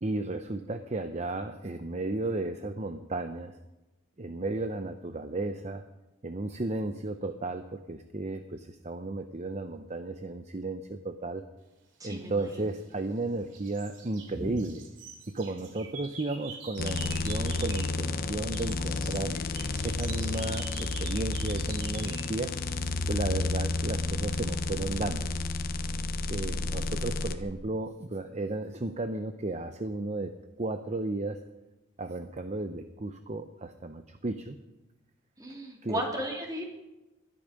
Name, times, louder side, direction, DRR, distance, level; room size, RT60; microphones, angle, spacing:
voice 1, 0.0-3.6 4.2-5.9 6.2-11.4 12.0-14.8 15.3-19.4 19.8-22.5 23.1-25.3 26.3-30.3 30.6-31.4 32.0-34.6 35.8-36.0, right 2 dB, 35° right, 8 dB, 0.7 m, -34 dB
voice 2, 12.0-12.6 14.3-14.5 35.4-36.7, equal, 20° right, 0 dB, 3.2 m, -35 dB
sound 1, 12.4-13.2 13.5-18.0 18.3-22.3, right 5 dB, 70° right, 3.1 m, -46 dB
sound 2, 16.8-27.4, left 3 dB, 50° left, 1.0 m, -31 dB
21.0 x 12.5 x 5.3 m, 1.0 s
head